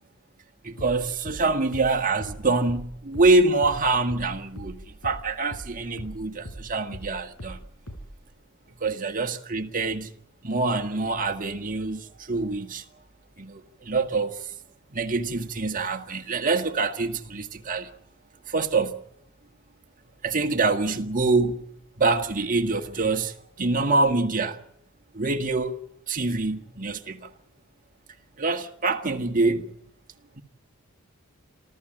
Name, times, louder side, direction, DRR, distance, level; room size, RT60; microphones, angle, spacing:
voice 1, 0.6-7.6 8.8-10.1 10.4-12.8 13.4-14.4 14.9-17.9 18.5-19.0 20.2-21.6 22.0-24.6 25.1-25.8 26.1-27.3 28.4-29.7, right 3 dB, 40° right, 1.7 m, -25 dB
sound 1, 0.8-5.7 6.0-8.2, equal, 75° left, 6.6 m, -40 dB
27.5 x 13.5 x 8.9 m
head